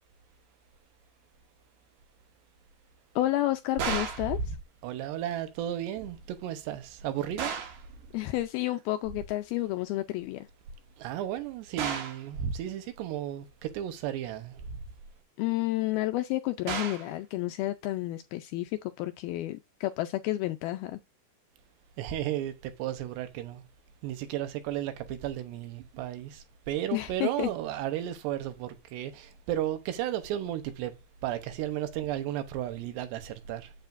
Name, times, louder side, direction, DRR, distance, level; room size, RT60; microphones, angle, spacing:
voice 1, 3.2-4.6 8.1-10.5 15.4-21.0 26.9-27.5, left 16 dB, 85° left, 2.2 m, -30 dB
sound 1, 3.8-4.3 7.4-7.9 11.8-12.3 16.7-17.1, right 6 dB, 60° right, 2.3 m, -33 dB
voice 2, 4.8-7.5 11.0-14.6 22.0-23.6 24.0-31.0 31.2-33.7, right 11 dB, 80° right, 3.1 m, -34 dB
8.8 x 8.0 x 2.6 m
omnidirectional pair, 4.9 m